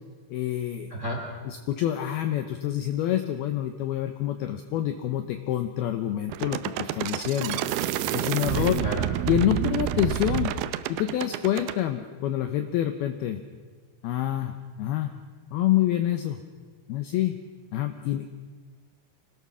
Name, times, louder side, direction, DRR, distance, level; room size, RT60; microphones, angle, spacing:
voice 1, 0.3-0.9 1.5-8.8 9.3-10.5 10.9-13.4 14.0-15.1 15.5-16.4 16.9-17.4 17.7-18.3, left 12 dB, 80° left, 7 dB, 2.3 m, -27 dB
voice 2, 0.9-1.2 8.5-9.1, right 1 dB, 25° right, 1 dB, 1.8 m, -31 dB
sound 1, 6.3-11.8, right 11 dB, 80° right, 2.3 m, -28 dB
25.0 x 19.0 x 6.2 m, 1.4 s
omnidirectional pair, 5.4 m